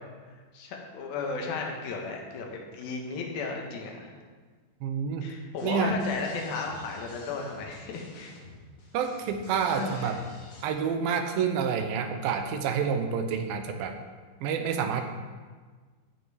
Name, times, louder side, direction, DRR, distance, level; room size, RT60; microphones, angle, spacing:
voice 1, 0.5-4.1 5.2-8.3 9.7-10.1, left 4 dB, 80° left, 1 dB, 3.1 m, -35 dB
voice 2, 4.8-5.3 5.6-6.0 8.9-10.2 10.6-14.0 14.4-15.0, right 6 dB, 90° right, 6 dB, 2.6 m, -28 dB
sound 1, 5.6-10.6, left 3 dB, 55° left, 2.6 m, -49 dB
14.5 x 5.6 x 4.8 m, 1.5 s
omnidirectional pair, 4.2 m